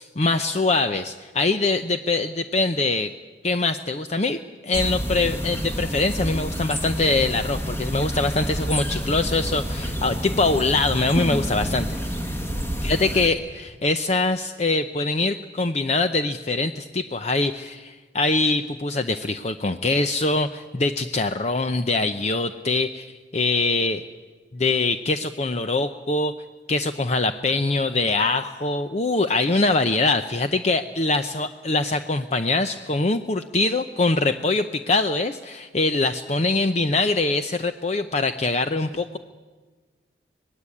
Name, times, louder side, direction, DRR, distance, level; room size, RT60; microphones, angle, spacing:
voice 1, 0.0-3.1 3.4-12.0 12.8-24.0 24.5-26.3 26.7-39.2, left 3 dB, 40° left, 9 dB, 0.7 m, -23 dB
sound 1, 4.7-13.3, equal, 15° left, 1.9 m, -28 dB
25.5 x 19.5 x 8.5 m, 1.4 s
head